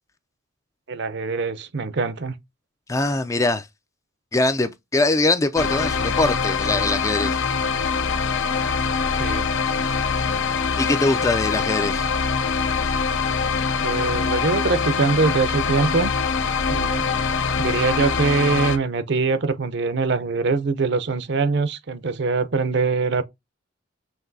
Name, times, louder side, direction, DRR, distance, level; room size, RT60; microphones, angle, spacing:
voice 1, 0.9-2.4 9.2-9.5 13.8-16.1 16.7-17.1 17.6-23.2, right 4 dB, 55° right, 0.6 m, -23 dB
voice 2, 2.9-3.7 4.3-7.4 10.8-12.1, left 2 dB, 15° left, 0.3 m, -22 dB
sound 1, 5.6-18.8, left 5 dB, 70° left, 0.5 m, -23 dB
5.8 x 2.6 x 2.6 m
head